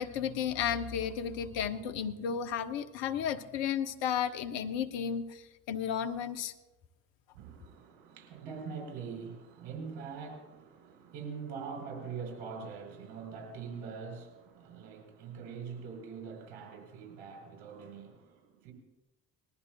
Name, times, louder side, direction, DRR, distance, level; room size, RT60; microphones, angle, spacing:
voice 1, 0.0-5.4 5.7-6.5, left 8 dB, 75° left, 0.9 m, -33 dB
voice 2, 7.3-18.7, right 5 dB, 75° right, 3.9 m, -43 dB
20.5 x 14.0 x 2.2 m
hypercardioid pair, 40°, 44 cm